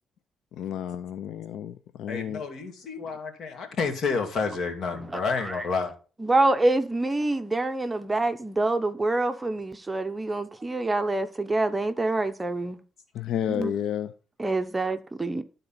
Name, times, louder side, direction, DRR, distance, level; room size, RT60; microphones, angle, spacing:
voice 1, 0.5-2.5 13.1-14.1, left 9 dB, 80° left, 0.5 m, -31 dB
voice 2, 2.1-5.9, left 4 dB, 60° left, 2.2 m, -29 dB
voice 3, 5.1-5.7 6.2-12.8 13.5-13.7 14.4-15.4, right 2 dB, 20° right, 0.8 m, -26 dB
12.0 x 4.0 x 5.6 m
cardioid pair, 90°, 0 cm